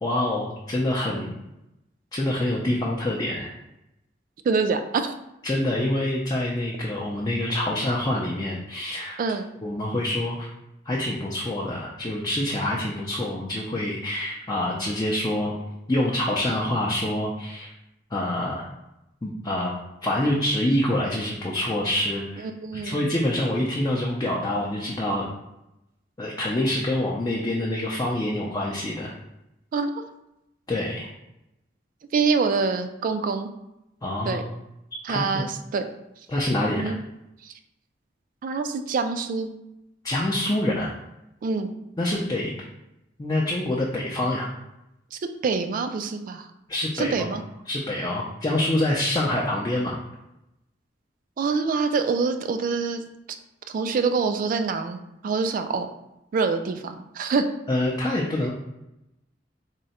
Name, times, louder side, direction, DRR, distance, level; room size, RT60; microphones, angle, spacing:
voice 1, 0.0-1.3 2.1-3.5 5.4-9.2 9.6-10.5 10.9-15.5 15.9-17.7 18.1-18.7 19.2-19.7 20.0-22.5 22.8-25.3 26.2-29.1 30.7-31.1 34.0-34.4 35.1-35.5 36.3-36.9 40.0-40.9 42.0-42.5 43.2-44.5 46.7-47.3 47.7-50.0 57.7-58.5, left 1 dB, 20° left, -4 dB, 0.4 m, -26 dB
voice 2, 4.4-5.1 9.2-9.5 22.4-23.1 29.7-30.0 32.1-33.5 34.3-34.4 35.0-35.9 36.8-37.0 37.4-37.5 38.4-39.5 41.4-41.7 45.1-46.5 46.9-47.4 51.4-53.0 53.7-55.9 56.3-57.5, right 4 dB, 45° right, 8 dB, 0.3 m, -25 dB
3.6 x 2.1 x 4.1 m, 0.89 s
head